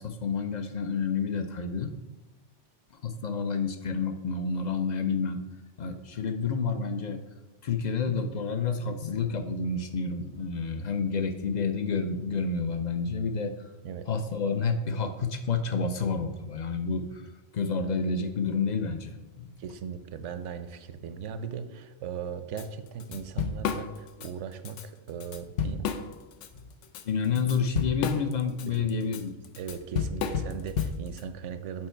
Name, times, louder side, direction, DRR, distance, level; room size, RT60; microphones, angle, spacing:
voice 1, 0.0-1.9 3.0-5.4 5.8-7.2 7.6-13.7 14.1-17.2 17.5-19.5 27.0-29.3, left 5 dB, 50° left, 7 dB, 0.5 m, -29 dB
voice 2, 19.6-25.9 28.7-31.9, right 7 dB, 80° right, 10 dB, 0.9 m, -38 dB
Drum kit / Drum, 22.6-22.7 23.0-24.3 24.7-24.8 25.2-26.5 26.8-31.2, left 7 dB, 80° left, 0.9 m, -31 dB
7.5 x 4.5 x 4.4 m, 1.1 s
omnidirectional pair, 1.2 m